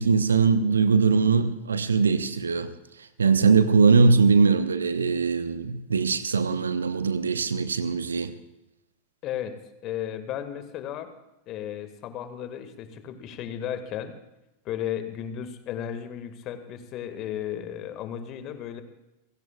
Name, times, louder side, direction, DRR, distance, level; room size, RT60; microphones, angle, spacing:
voice 1, 0.0-2.7 3.2-8.3, right 5 dB, 70° right, 0.9 m, -21 dB
voice 2, 9.2-9.6 9.8-11.1 11.5-14.1 14.7-18.8, left 10 dB, 35° left, 1.8 m, -34 dB
28.5 x 16.5 x 2.4 m
figure-of-eight pair, 90°, 0 cm